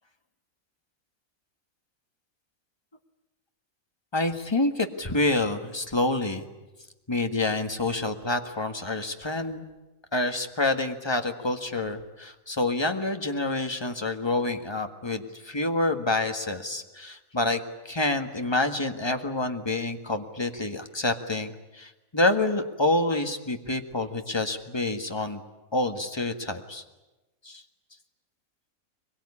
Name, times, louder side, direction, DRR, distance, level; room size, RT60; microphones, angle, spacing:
voice 1, 4.1-6.5 7.1-9.6 10.1-17.6 17.8-25.4 25.7-26.8 27.4-27.6, left 2 dB, 20° left, 6 dB, 1.6 m, -27 dB
23.5 x 22.0 x 9.9 m, 1.1 s
omnidirectional pair, 1.5 m